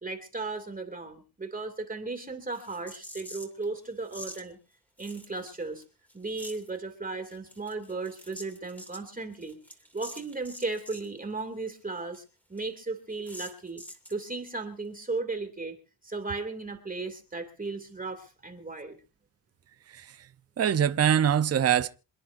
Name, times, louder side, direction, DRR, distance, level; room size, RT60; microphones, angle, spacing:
voice 1, 0.0-4.6 5.0-5.8 6.1-9.6 9.9-12.2 12.5-13.8 14.1-15.8 16.0-19.0, right 3 dB, 20° right, 2.5 m, -36 dB
sound 1, 2.5-3.6 4.1-4.4 5.0-5.8 6.1-6.7 7.3-11.1 11.4-11.5 11.7-11.8 12.1-12.2 12.6-12.7 13.2-14.2, equal, 5° left, 2.5 m, -46 dB
voice 2, 20.6-21.9, right 9 dB, 35° right, 0.7 m, -23 dB
27.5 x 10.0 x 2.6 m
cardioid pair, 95°, 43 cm